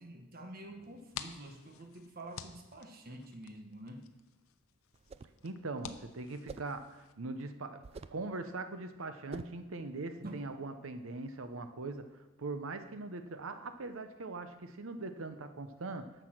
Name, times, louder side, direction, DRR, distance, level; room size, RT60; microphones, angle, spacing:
voice 1, 0.0-4.1 10.2-10.5, right 1 dB, 45° right, 5 dB, 1.1 m, -47 dB
sound 1, 0.8-7.1, left 8 dB, 80° left, 0.6 m, -51 dB
sound 2, 4.9-5.4 6.5-6.8 7.8-8.3 9.3-9.6, right 4 dB, 30° right, 0.3 m, -47 dB
voice 2, 5.4-7.8 8.1-12.1 12.4-16.1, right 3 dB, 70° right, 9 dB, 0.7 m, -41 dB
10.0 x 7.0 x 6.0 m, 1.1 s
head